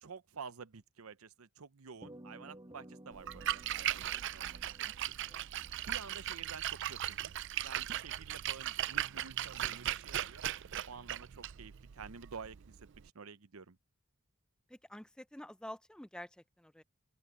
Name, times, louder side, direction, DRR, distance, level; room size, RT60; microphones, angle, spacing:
voice 1, 0.0-4.9 5.8-7.3 7.6-10.5 10.9-12.8 13.1-13.8, right 5 dB, 85° right, 0.8 m, -50 dB
sound 1, 2.0-6.6, right 1 dB, 20° right, 1.9 m, -56 dB
Splash splatter, 3.1-13.1, right 12 dB, 60° right, 0.5 m, -38 dB
voice 2, 14.7-16.3 16.6-16.8, left 1 dB, 5° left, 0.5 m, -48 dB
open air
head